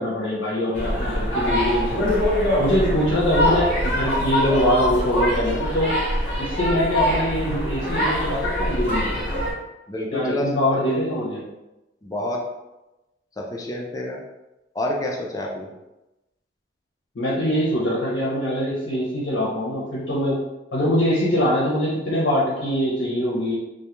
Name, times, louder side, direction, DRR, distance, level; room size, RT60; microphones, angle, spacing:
voice 1, 0.0-2.1 2.6-5.9 6.4-9.1 10.1-11.4 17.1-20.4 20.7-23.6, equal, 80° left, -6 dB, 0.6 m, -23 dB
sound 1, 0.7-9.5, left 1 dB, 45° left, 0.8 m, -23 dB
voice 2, 9.9-10.8 12.0-12.4 13.4-14.2 14.7-15.7, left 1 dB, 20° left, -1 dB, 0.3 m, -28 dB
2.3 x 2.1 x 2.9 m, 0.99 s
head